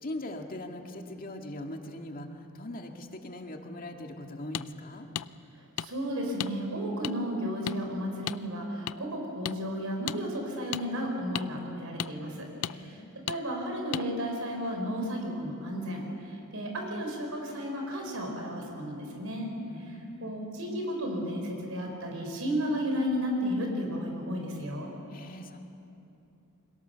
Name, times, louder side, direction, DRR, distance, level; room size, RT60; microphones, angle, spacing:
voice 1, 0.0-5.1 12.6-13.1 19.7-20.3 25.1-25.6, left 1 dB, 40° left, 3 dB, 2.0 m, -41 dB
sound 1, 4.5-4.7 5.2-5.3 5.8-5.9 6.4-6.5 7.0-7.1 7.7-7.8 8.3-8.4 8.9-9.0 9.4-9.6 10.1-10.2 10.7-10.8 11.3-11.5 12.0-12.1 12.6-12.8 13.3-13.4 13.9-14.1, left 10 dB, 85° left, 0.5 m, -33 dB
voice 2, 5.8-12.5 12.7-13.0 13.3-16.0 16.3-19.5 19.9-24.9, equal, 70° right, 1 dB, 4.6 m, -33 dB
29.0 x 23.0 x 6.9 m, 2.8 s
head